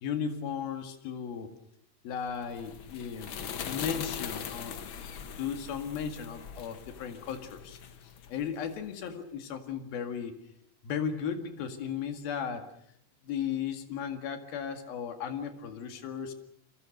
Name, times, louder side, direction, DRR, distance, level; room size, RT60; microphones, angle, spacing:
voice 1, 0.0-1.5 2.0-3.4 3.6-5.0 5.3-10.4 10.8-12.7 13.2-16.3, left 7 dB, 90° left, 8 dB, 3.9 m, -36 dB
sound 1, 2.3-8.9, left 7 dB, 65° left, 1.2 m, -41 dB
29.0 x 22.5 x 6.6 m, 0.73 s
omnidirectional pair, 4.1 m